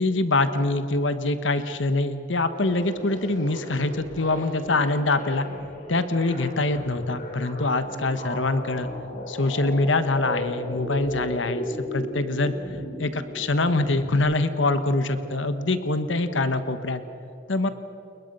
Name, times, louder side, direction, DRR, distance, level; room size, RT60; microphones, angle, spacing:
voice 1, 0.0-5.5 5.9-8.9 9.3-12.5 13.0-17.0 17.5-17.7, left 2 dB, 75° left, 10 dB, 1.4 m, -24 dB
sound 1, 2.5-14.2, left 1 dB, 40° left, 4.3 m, -35 dB
29.5 x 22.0 x 5.6 m, 2.9 s
head